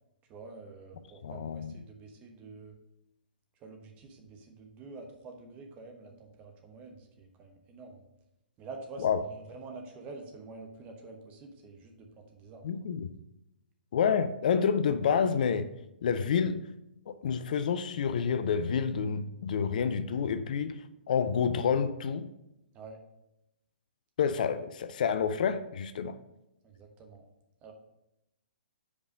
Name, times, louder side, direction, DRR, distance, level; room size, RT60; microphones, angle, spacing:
voice 1, 0.3-2.7 3.6-8.0 8.6-12.7 22.7-23.0 26.6-27.2 27.6-27.7, right 3 dB, 25° right, 3 dB, 1.1 m, -47 dB
voice 2, 1.2-1.7 9.0-9.2 12.6-13.1 13.9-15.7 16.0-16.6 17.1-22.3 24.2-26.2, left 7 dB, 55° left, 11 dB, 0.4 m, -28 dB
5.1 x 4.8 x 6.2 m, 0.88 s
figure-of-eight pair, 120°, 5 cm